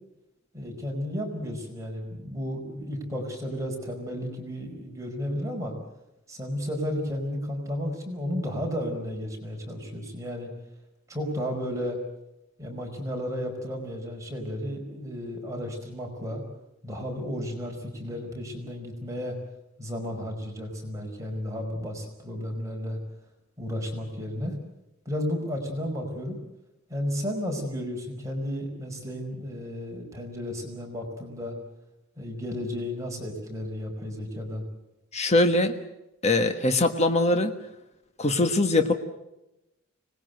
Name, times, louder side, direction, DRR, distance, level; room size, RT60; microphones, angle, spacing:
voice 1, 0.5-5.7 6.3-10.5 11.1-12.0 12.6-16.4 16.8-19.3 19.8-23.0 23.6-24.6 25.0-26.4 26.9-31.5 32.2-34.7, equal, 15° right, 0 dB, 5.0 m, -33 dB
voice 2, 35.1-35.8 36.2-37.5 38.2-38.9, left 2 dB, 35° left, 7 dB, 1.4 m, -22 dB
25.5 x 20.5 x 7.9 m, 0.91 s
head